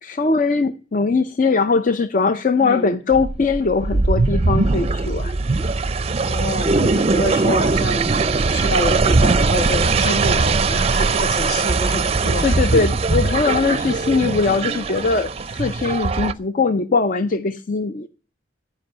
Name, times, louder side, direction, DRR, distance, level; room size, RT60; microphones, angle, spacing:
voice 1, 0.0-5.4 12.4-18.1, left 4 dB, 45° left, 0.5 m, -20 dB
voice 2, 2.6-2.9 6.2-12.9 13.2-13.8, equal, 65° left, 1.6 m, -27 dB
sound 1, 3.1-16.3, right 3 dB, 35° right, 0.5 m, -20 dB
15.0 x 5.2 x 7.9 m
head